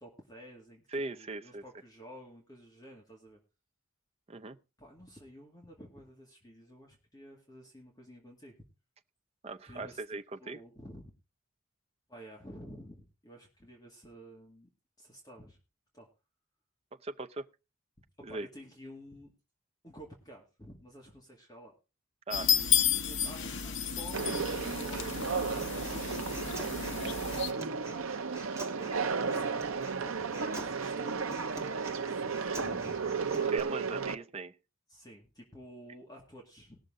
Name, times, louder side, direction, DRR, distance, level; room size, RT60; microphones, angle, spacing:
voice 1, 0.0-0.8 1.1-3.4 4.8-8.5 9.6-10.0 10.4-11.1 12.1-14.7 15.0-15.6 15.9-16.1 18.2-19.3 19.8-21.7 23.0-26.3 26.7-28.1 29.2-29.6 30.0-33.3 34.9-36.8, equal, 20° left, 2.1 m, -51 dB
voice 2, 0.9-1.6 4.3-4.6 9.4-10.6 17.0-17.5 18.2-18.5 22.3-22.5 28.8-29.0 33.5-34.5, right 3 dB, 30° right, 0.6 m, -39 dB
sound 1, 22.3-27.5, left 8 dB, 60° left, 1.2 m, -32 dB
Conversation, 24.1-34.1, right 5 dB, 75° right, 0.8 m, -34 dB
Human voice, 25.6-33.6, right 2 dB, 15° right, 1.8 m, -47 dB
19.0 x 6.6 x 3.7 m
head